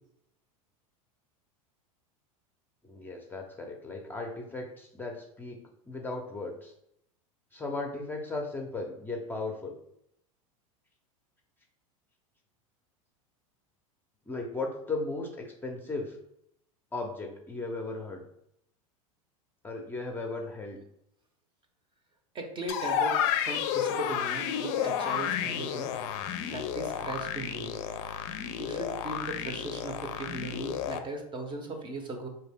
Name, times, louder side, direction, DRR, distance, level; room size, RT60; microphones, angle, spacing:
voice 1, 2.8-5.6 5.9-6.7 7.5-9.7 14.3-16.2 16.9-18.2 19.6-20.8, left 3 dB, 10° left, 1 dB, 0.6 m, -36 dB
voice 2, 22.3-25.9 26.5-27.8 28.6-32.3, right 2 dB, 25° right, 4 dB, 0.7 m, -38 dB
sound 1, 22.7-31.0, left 9 dB, 55° left, 0.5 m, -31 dB
3.8 x 2.8 x 3.5 m, 0.75 s
hypercardioid pair, 95°, 18 cm